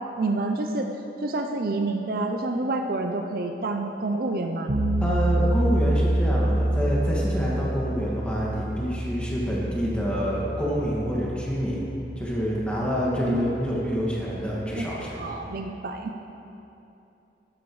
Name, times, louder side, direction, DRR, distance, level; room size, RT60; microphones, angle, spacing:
voice 1, 0.2-0.9 1.2-4.7 13.2-13.5 14.7-14.9 15.2-16.1, right 2 dB, 55° right, 4 dB, 0.6 m, -28 dB
sound 1, 4.7-15.6, right 1 dB, 80° right, 1.5 m, -28 dB
voice 2, 5.0-11.9 12.2-15.2, equal, 5° left, -6 dB, 2.0 m, -27 dB
13.0 x 12.0 x 3.2 m, 2.9 s
head